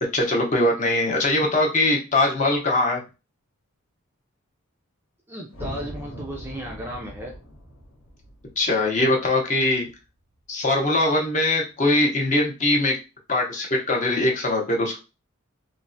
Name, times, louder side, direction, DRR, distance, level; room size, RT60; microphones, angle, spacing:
voice 1, 0.0-3.0 8.6-9.9 10.5-13.0 13.3-15.0, left 2 dB, 35° left, 0 dB, 0.7 m, -21 dB
voice 2, 5.3-7.4, equal, 10° right, -1 dB, 0.3 m, -35 dB
sound 1, 5.5-9.9, equal, 70° left, 0.8 m, -40 dB
3.2 x 2.1 x 2.5 m, 0.29 s
head